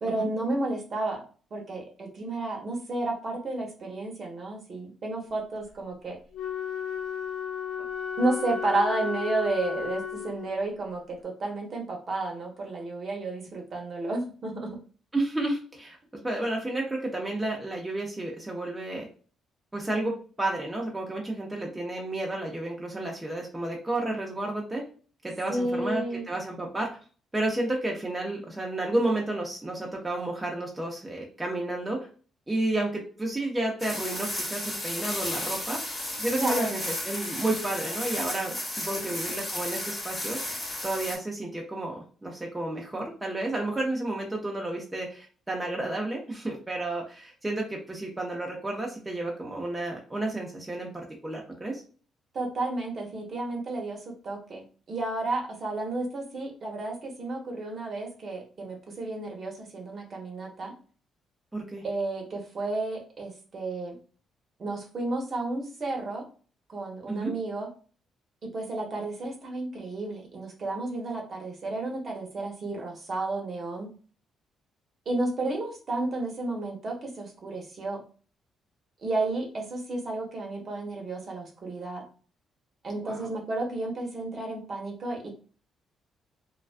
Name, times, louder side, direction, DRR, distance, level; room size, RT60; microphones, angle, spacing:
voice 1, 0.0-1.2 1.5-6.2 8.2-14.8 25.5-26.3 36.3-36.7 38.9-39.0 52.3-60.7 61.8-64.0 64.6-66.2 66.7-67.7 68.5-73.9 75.1-78.0 79.0-82.0 82.8-85.3, right 2 dB, 45° right, 0 dB, 0.9 m, -32 dB
Wind instrument woodwind instrument, 6.3-10.8, left 7 dB, 85° left, 0.4 m, -34 dB
voice 2, 15.1-16.0 16.2-19.1 19.7-24.8 25.2-26.9 27.3-32.1 32.5-35.8 36.2-40.4 40.8-51.8 61.5-61.8 67.1-67.3 83.0-83.3, right 2 dB, 15° right, -1 dB, 0.6 m, -31 dB
sound 1, 33.8-41.2, left 1 dB, 20° left, 1.0 m, -33 dB
2.3 x 2.2 x 2.4 m, 0.40 s
cardioid pair, 90°, 0 cm